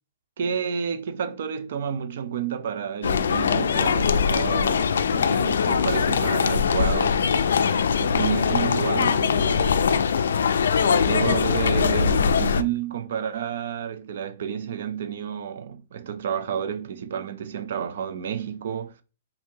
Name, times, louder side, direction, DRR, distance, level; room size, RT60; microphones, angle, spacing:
voice 1, 0.4-7.3 8.0-9.8 10.8-18.9, right 8 dB, 60° right, 0.5 m, -30 dB
sound 1, 3.0-12.6, left 6 dB, 85° left, 0.3 m, -22 dB
2.8 x 2.7 x 4.4 m
hypercardioid pair, 160°, 0 cm